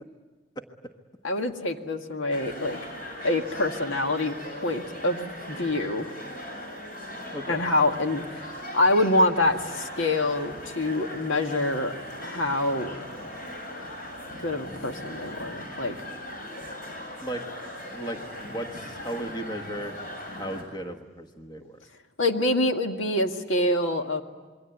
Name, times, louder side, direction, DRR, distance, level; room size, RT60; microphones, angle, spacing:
voice 1, 1.2-2.8 3.2-4.4 4.6-6.1 7.5-11.9 12.2-12.9 14.4-16.0 22.2-24.2, left 1 dB, 75° left, 5 dB, 2.0 m, -26 dB
sound 1, 2.3-20.6, left 1 dB, 45° left, 7.2 m, -39 dB
voice 2, 17.9-19.9 20.4-21.8, right 1 dB, 20° left, 5 dB, 1.4 m, -36 dB
27.5 x 23.0 x 9.3 m, 1.3 s
head